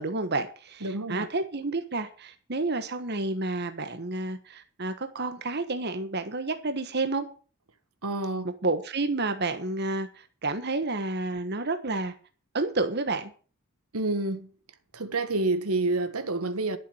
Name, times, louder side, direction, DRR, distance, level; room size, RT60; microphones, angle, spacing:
voice 1, 0.0-7.3 8.6-12.1 12.5-13.3, right 3 dB, 50° right, 1.3 m, -30 dB
voice 2, 0.8-1.3 8.0-8.5 13.9-14.5 14.9-16.8, right 2 dB, 90° right, 1.5 m, -28 dB
12.0 x 7.2 x 7.7 m
head